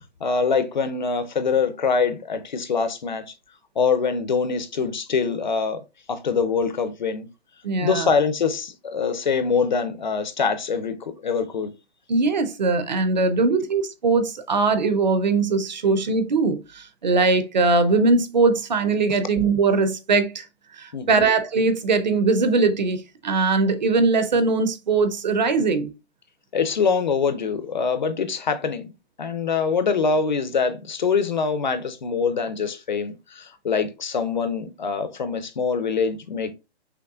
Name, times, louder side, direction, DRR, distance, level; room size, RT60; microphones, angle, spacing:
voice 1, 0.2-3.3 3.8-5.8 6.1-7.3 7.8-11.7 20.9-21.3 26.5-28.8 29.2-36.5, left 5 dB, 45° left, 0.5 m, -24 dB
voice 2, 7.6-8.1 12.1-20.5 20.8-25.9, right 3 dB, 40° right, 0.6 m, -21 dB
5.7 x 3.2 x 2.4 m
hypercardioid pair, 180°, 33 cm